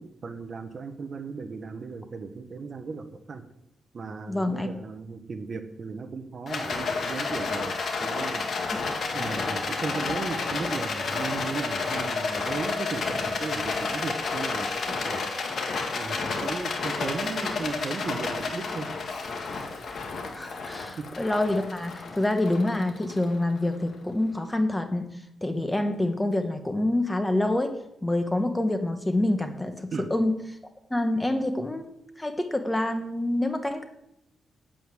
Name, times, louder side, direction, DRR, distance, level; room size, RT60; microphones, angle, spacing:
voice 1, 0.0-3.4 3.9-7.7 8.0-8.5 9.1-15.2 15.9-18.9 21.0-21.1 29.9-30.1, right 4 dB, 35° right, 8 dB, 1.2 m, -36 dB
voice 2, 4.3-4.7 20.3-25.1 25.4-27.7 28.0-30.3 30.9-31.9 32.2-33.8, left 1 dB, 10° left, 7 dB, 1.0 m, -26 dB
Rattle, 6.5-23.8, left 4 dB, 45° left, 2.1 m, -31 dB
9.1 x 8.0 x 9.0 m, 0.80 s
wide cardioid pair, 170°, 0 cm